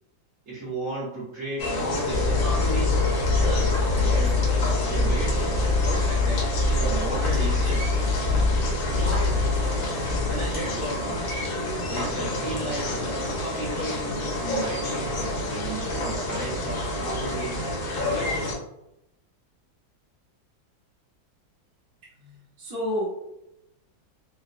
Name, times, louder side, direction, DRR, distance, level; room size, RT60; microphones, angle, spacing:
voice 1, 0.4-3.0 3.4-8.2 8.8-9.5 10.2-11.2 11.9-17.8 18.0-18.5, right 1 dB, 45° right, -8 dB, 1.4 m, -35 dB
sound 1, 1.6-18.5, left 1 dB, 80° left, 1.7 m, -29 dB
sound 2, 2.1-10.6, left 3 dB, 90° right, 1.5 m, -24 dB
voice 2, 22.2-23.1, equal, 25° right, -8 dB, 0.9 m, -30 dB
4.1 x 2.2 x 2.5 m, 0.83 s
omnidirectional pair, 2.1 m